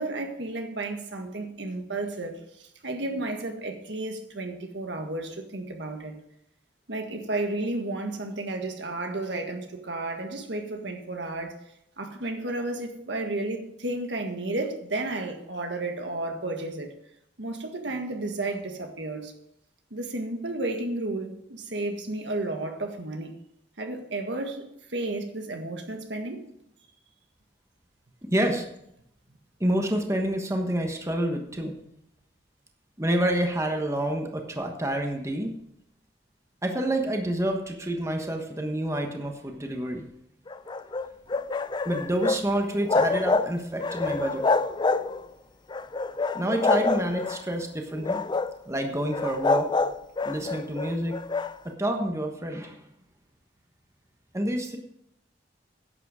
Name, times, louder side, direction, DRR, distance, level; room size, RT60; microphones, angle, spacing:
voice 1, 0.0-6.1 6.9-11.6 12.0-16.9 17.4-19.3 19.9-23.3 23.8-26.5, right 2 dB, 70° right, 1.6 m, -32 dB
voice 2, 28.2-28.7 29.6-31.7 33.0-35.5 36.6-40.0 41.8-44.5 46.3-48.2 48.7-49.7 50.2-51.2 51.6-52.8 54.3-54.8, right 1 dB, 15° right, 1.2 m, -28 dB
sound 1, 40.5-42.4 42.7-43.5 43.8-45.3 45.7-47.4 47.9-48.6 49.1-51.5, left 3 dB, 25° left, 0.4 m, -26 dB
11.0 x 8.0 x 5.0 m
head